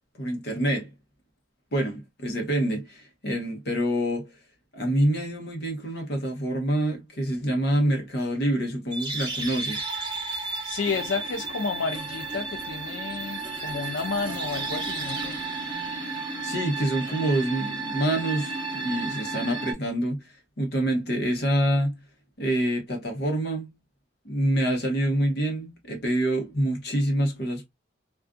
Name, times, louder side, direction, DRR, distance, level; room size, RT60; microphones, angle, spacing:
voice 1, 0.1-0.9 1.7-4.3 4.7-9.8 16.4-22.0 22.4-23.7 24.2-27.7, right 1 dB, 55° left, 0.9 m, -26 dB
sound 1, 8.9-19.7, right 3 dB, 25° right, 0.8 m, -33 dB
voice 2, 10.6-15.4, left 4 dB, 70° left, 0.4 m, -31 dB
2.4 x 2.4 x 2.2 m
head